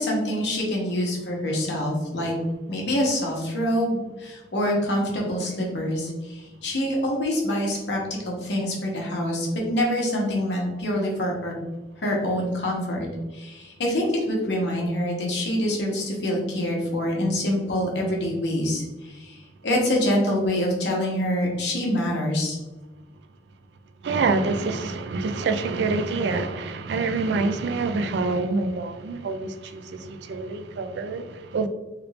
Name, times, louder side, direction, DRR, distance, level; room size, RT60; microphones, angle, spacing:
voice 1, 0.0-2.3 2.7-11.5 12.0-13.1 13.3-19.4 19.6-22.6, left 1 dB, 75° left, 1.0 m, -25 dB
voice 2, 24.0-31.7, right 3 dB, 70° right, 0.3 m, -26 dB
3.3 x 2.4 x 3.2 m
head